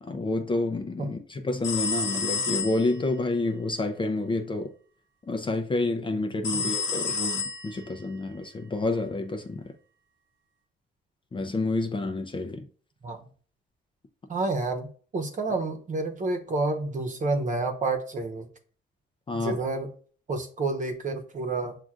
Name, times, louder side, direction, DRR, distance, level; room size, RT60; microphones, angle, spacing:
voice 1, 0.0-4.7 5.3-9.7 11.3-12.6 19.3-19.6, left 2 dB, 25° left, 0.5 m, -29 dB
sound 1, 1.6-3.0 6.4-8.0, left 5 dB, 65° left, 1.0 m, -30 dB
voice 2, 14.3-14.9 15.1-18.5 19.3-19.9 20.3-21.8, right 3 dB, 40° right, 1.0 m, -29 dB
7.4 x 2.5 x 2.4 m
cardioid pair, 90°, 20 cm